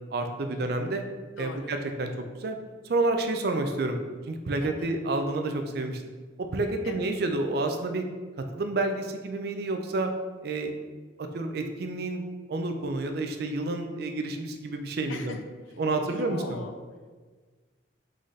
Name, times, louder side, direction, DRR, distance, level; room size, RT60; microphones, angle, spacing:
voice 1, 0.1-1.0 1.4-2.1 2.4-2.6 2.8-4.0 4.3-6.0 6.4-8.1 8.5-10.1 10.4-10.7 11.2-12.2 12.5-15.3 15.8-16.6, right 2 dB, 50° right, 5 dB, 0.4 m, -29 dB
voice 2, 1.4-1.7 4.6-4.9 6.8-7.1 15.1-15.8 16.1-16.8, left 3 dB, 85° left, 6 dB, 0.5 m, -41 dB
3.9 x 3.8 x 3.2 m, 1.4 s
head